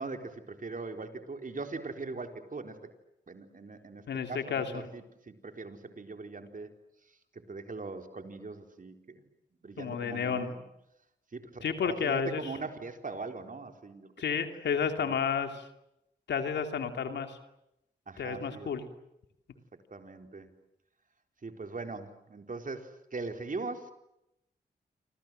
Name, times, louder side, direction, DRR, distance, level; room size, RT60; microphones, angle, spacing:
voice 1, 0.0-2.8 3.3-6.7 7.5-9.0 9.6-10.6 11.3-14.5 14.8-15.2 18.1-18.7 19.9-20.5 21.4-23.9, right 3 dB, 50° right, 6 dB, 4.3 m, -41 dB
voice 2, 4.1-4.8 9.8-10.5 11.6-12.5 14.2-15.6 16.3-17.4 18.2-18.8, left 6 dB, 85° left, 7 dB, 2.8 m, -31 dB
28.5 x 26.5 x 7.8 m, 0.84 s
cardioid pair, 45°, 18 cm